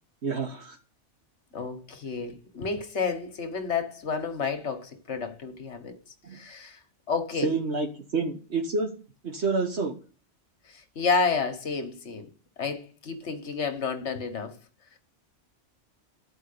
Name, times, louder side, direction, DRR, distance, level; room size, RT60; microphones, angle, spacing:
voice 1, 0.2-0.8 6.2-6.4 7.4-8.9 9.2-9.9, right 4 dB, 65° right, 1.4 m, -28 dB
voice 2, 1.5-6.0 6.3-6.8 7.1-7.5 10.7-12.3 12.6-14.6, left 5 dB, 70° left, 1.5 m, -30 dB
13.0 x 4.8 x 6.7 m
omnidirectional pair, 1.2 m